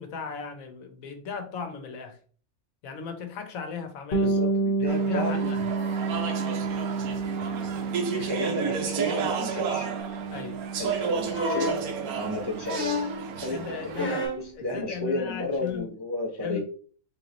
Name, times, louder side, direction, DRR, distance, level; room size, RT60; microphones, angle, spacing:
voice 1, 0.0-2.2 2.8-4.5 4.8-5.7 10.3-10.6 13.2-14.2 14.6-15.9 16.4-16.6, left 6 dB, 70° left, 6 dB, 1.2 m, -37 dB
Bass guitar, 4.1-13.7, right 3 dB, 45° left, 0.9 m, -31 dB
voice 2, 4.2-5.5 6.9-7.2 8.0-9.9 10.8-12.9 13.4-13.6 14.0-16.6, left 1 dB, 30° right, -2 dB, 0.5 m, -32 dB
Speech / Chatter, 4.9-14.3, right 6 dB, 85° right, 1.2 m, -32 dB
sound 1, 11.3-11.8 12.6-13.2 13.9-14.5 15.7-15.8, left 2 dB, 10° left, 0.9 m, -30 dB
3.7 x 3.0 x 3.9 m, 0.42 s
omnidirectional pair, 1.5 m